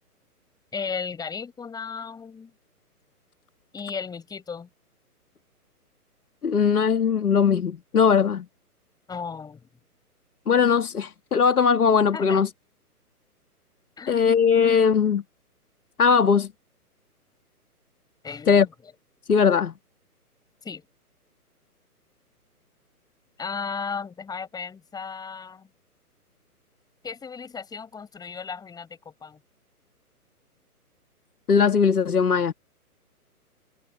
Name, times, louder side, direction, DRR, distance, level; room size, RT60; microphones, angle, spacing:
voice 1, 0.7-2.5 3.7-4.7 9.1-9.7 12.1-12.5 14.0-14.2 18.2-18.9 20.6-20.9 23.4-25.7 27.0-29.4, left 5 dB, 10° left, 5.0 m, -35 dB
voice 2, 6.4-8.5 10.5-12.5 14.1-15.2 16.0-16.5 18.5-18.7 19.3-19.7 31.5-32.5, left 6 dB, 70° left, 1.8 m, -20 dB
figure-of-eight pair, 135°, 46 cm